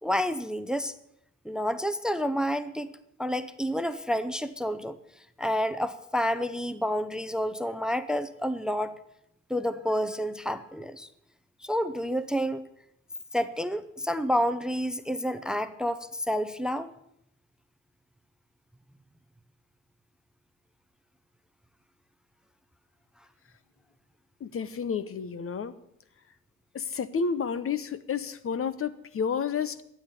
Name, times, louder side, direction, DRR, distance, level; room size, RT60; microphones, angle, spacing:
voice 1, 0.0-0.9 1.4-2.9 3.2-5.0 5.4-8.9 9.5-11.1 11.6-12.6 13.3-16.9, equal, ahead, 14 dB, 0.8 m, -29 dB
voice 2, 24.4-25.7 26.7-29.8, left 6 dB, 45° left, 15 dB, 1.0 m, -30 dB
13.0 x 8.8 x 9.7 m, 0.78 s
cardioid pair, 90°, 30 cm